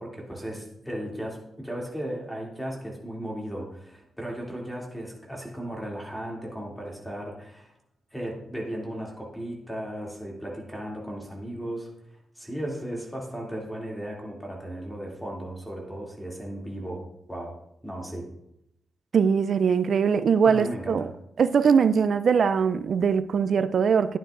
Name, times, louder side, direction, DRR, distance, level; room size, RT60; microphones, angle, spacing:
voice 1, 0.0-7.7 8.1-11.9 12.3-17.6 17.8-18.3 20.4-21.1, right 1 dB, 5° left, 2.6 m, -36 dB
voice 2, 19.1-21.1 21.4-24.2, right 6 dB, 65° right, 0.4 m, -21 dB
11.0 x 9.1 x 2.5 m
supercardioid pair, 50°, 0 cm